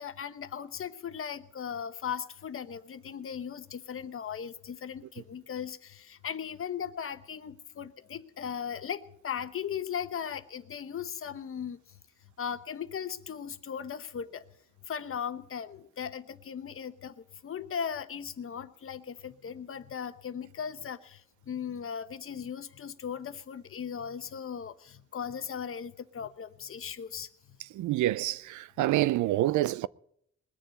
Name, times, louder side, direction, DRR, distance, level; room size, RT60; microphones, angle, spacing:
voice 1, 0.0-11.8 12.4-14.4 14.9-17.1 17.4-21.2 21.5-27.3, left 7 dB, 45° left, 1.0 m, -38 dB
voice 2, 27.7-29.9, right 15 dB, 75° right, 0.5 m, -27 dB
20.5 x 6.9 x 9.1 m
cardioid pair, 90°, 30 cm